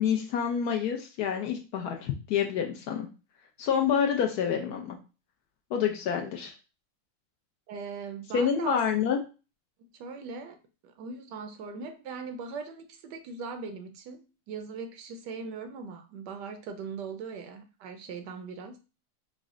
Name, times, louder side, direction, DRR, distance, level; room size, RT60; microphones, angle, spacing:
voice 1, 0.0-3.1 3.6-5.0 5.7-6.5 8.3-9.2, left 8 dB, 70° left, 2 dB, 1.0 m, -27 dB
voice 2, 7.7-8.8 9.9-10.6 10.8-18.8, right 5 dB, 75° right, 7 dB, 1.1 m, -40 dB
4.9 x 2.1 x 3.6 m, 0.32 s
omnidirectional pair, 2.0 m